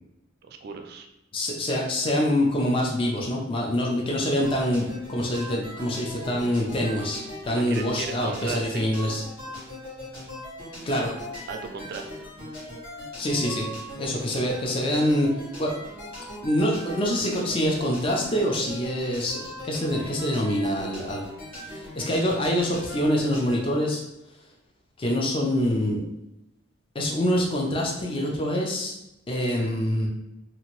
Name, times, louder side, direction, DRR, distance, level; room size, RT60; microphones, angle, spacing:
voice 1, 0.4-1.1 7.7-8.9 10.9-11.0 11.5-12.3, right 4 dB, 55° right, 5 dB, 0.4 m, -36 dB
voice 2, 1.3-9.2 10.8-11.1 13.2-13.7 14.0-15.3 15.6-15.7 16.4-21.2 21.6-24.0 25.0-26.0 26.9-28.9 29.3-30.1, equal, 25° left, -1 dB, 0.4 m, -25 dB
sound 1, 4.4-23.6, equal, 75° left, 1.4 m, -40 dB
2.8 x 2.5 x 3.0 m, 0.88 s
head